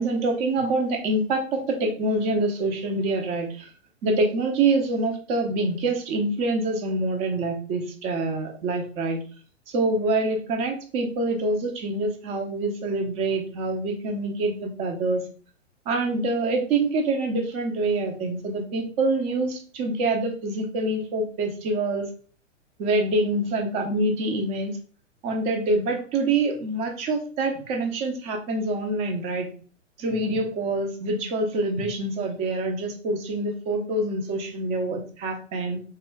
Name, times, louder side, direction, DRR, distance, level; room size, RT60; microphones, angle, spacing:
voice 1, 0.0-3.7 4.0-9.2 9.7-15.2 15.9-22.1 22.8-24.8 25.2-29.5 30.0-35.8, right 2 dB, 15° right, 3 dB, 0.4 m, -26 dB
3.5 x 2.2 x 3.4 m, 0.41 s
figure-of-eight pair, 115°, 38 cm